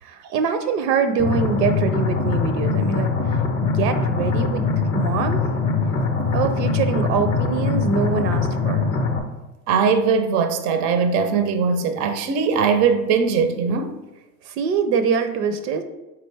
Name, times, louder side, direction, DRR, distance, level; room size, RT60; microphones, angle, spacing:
voice 1, 0.0-4.6 4.9-5.4 6.3-8.8 14.5-15.8, right 5 dB, 85° right, 0.6 m, -24 dB
sound 1, 1.2-9.2, left 4 dB, 25° left, 0.5 m, -22 dB
voice 2, 9.7-14.0, right 5 dB, 35° right, 0.4 m, -20 dB
3.7 x 3.3 x 3.2 m
hypercardioid pair, 100°, 47 cm